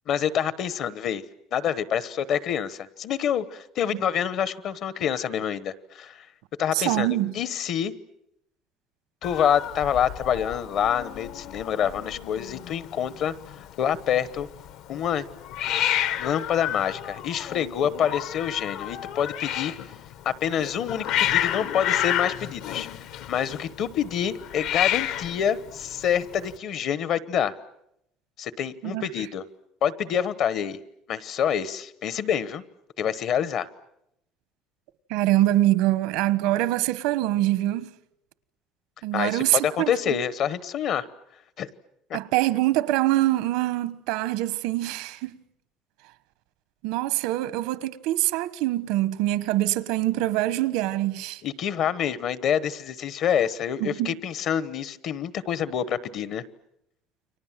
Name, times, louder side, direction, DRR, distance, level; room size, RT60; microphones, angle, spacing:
voice 1, 0.1-1.2 1.5-6.2 6.6-7.1 7.3-7.9 9.2-14.5 14.9-15.2 16.2-19.7 20.2-22.9 23.1-27.5 28.4-29.4 29.8-30.8 31.1-32.6 33.0-33.7 39.1-41.1 41.6-41.7 42.1-42.2 51.4-56.4, left 9 dB, 40° left, 1.1 m, -27 dB
voice 2, 6.7-7.3 28.8-29.0 35.1-37.9 39.0-40.2 42.1-45.4 46.8-51.4 53.8-54.2, right 16 dB, 80° right, 1.2 m, -24 dB
Hiss, 9.2-26.6, left 12 dB, 60° left, 1.5 m, -31 dB
29.5 x 24.5 x 7.5 m
cardioid pair, 180°, 0 cm